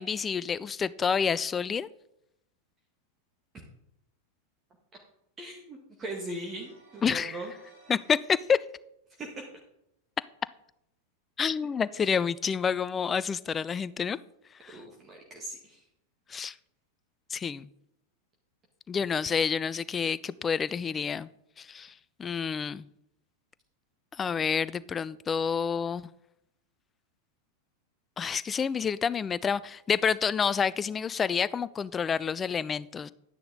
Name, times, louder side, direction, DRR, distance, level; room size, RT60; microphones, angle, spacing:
voice 1, 0.0-1.9 7.0-7.4 7.9-8.6 11.4-14.2 14.6-14.8 16.3-16.5 17.3-17.7 18.9-21.3 21.6-21.9 22.2-22.9 24.2-26.1 28.2-33.1, left 6 dB, 20° left, 18 dB, 0.4 m, -28 dB
voice 2, 5.4-7.5 9.2-9.3 14.7-15.8, right 1 dB, 25° right, 0 dB, 1.8 m, -39 dB
sound 1, 6.1-8.3, right 3 dB, 55° right, 4.7 m, -59 dB
11.0 x 9.8 x 3.9 m, 0.79 s
figure-of-eight pair, 90°, 0 cm